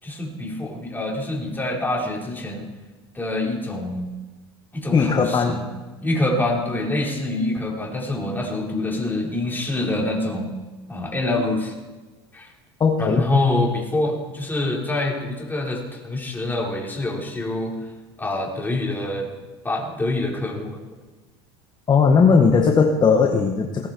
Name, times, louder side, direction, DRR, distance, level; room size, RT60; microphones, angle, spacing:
voice 1, 0.0-2.7 3.1-4.1 4.7-5.6 6.0-10.5 10.9-11.7 12.3-12.5 13.0-17.8 18.2-19.3 19.6-20.8, left 2 dB, 15° left, -2 dB, 4.9 m, -25 dB
voice 2, 4.9-5.6 12.8-13.2 21.9-23.9, left 5 dB, 30° left, 3 dB, 1.7 m, -17 dB
18.5 x 13.5 x 4.7 m, 1.2 s
hypercardioid pair, 85°, 14 cm